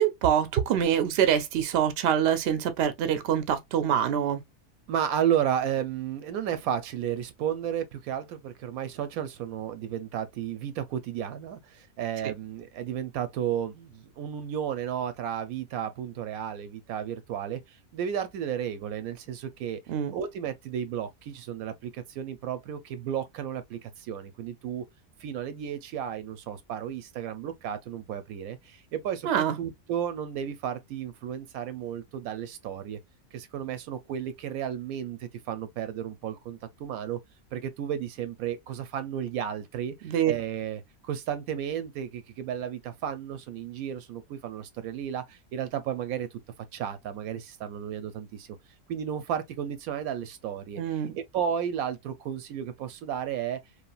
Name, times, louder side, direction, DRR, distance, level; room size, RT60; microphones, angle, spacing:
voice 1, 0.0-4.4 12.2-12.3 19.9-20.1 29.2-29.6 40.0-40.3 50.8-51.2, right 9 dB, 60° right, 0.7 m, -25 dB
voice 2, 4.9-17.6 17.9-19.8 20.1-24.8 25.2-33.0 33.3-37.2 37.5-39.9 40.3-46.3 46.7-48.5 48.9-50.8 51.2-53.6, right 9 dB, 90° right, 1.1 m, -33 dB
3.2 x 2.5 x 2.3 m
omnidirectional pair, 1.5 m